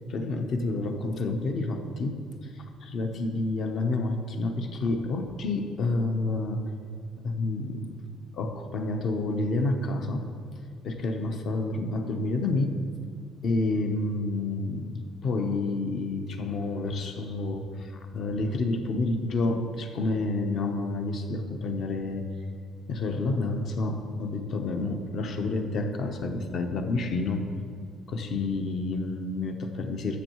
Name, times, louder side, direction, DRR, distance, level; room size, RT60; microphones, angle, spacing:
voice 1, 0.1-6.6 7.2-8.0 8.3-10.3 10.8-12.8 13.4-22.3 22.9-27.5 28.1-30.2, left 2 dB, 50° left, 5 dB, 0.8 m, -29 dB
13.5 x 7.1 x 3.1 m, 2.1 s
cardioid pair, 145°, 0 cm